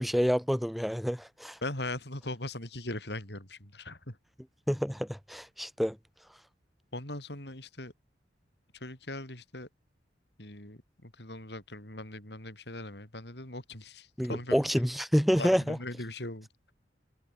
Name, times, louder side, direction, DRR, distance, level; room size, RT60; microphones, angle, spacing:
voice 1, 0.0-1.6 4.7-6.0 14.2-15.8, equal, ahead, 0.9 m, -28 dB
voice 2, 1.6-4.2 6.9-7.9 8.7-9.7 10.4-14.8 15.3-16.5, left 1 dB, 65° left, 7.6 m, -40 dB
head